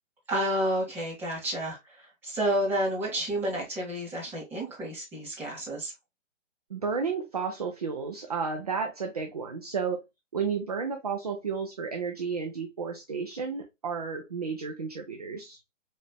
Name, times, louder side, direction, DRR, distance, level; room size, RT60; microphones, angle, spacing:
voice 1, 0.3-5.9, right 1 dB, 5° right, 1.5 m, -30 dB
voice 2, 6.7-10.0 10.3-15.6, right 5 dB, 35° right, 0.4 m, -32 dB
4.2 x 3.1 x 2.3 m
hypercardioid pair, 160°, 38 cm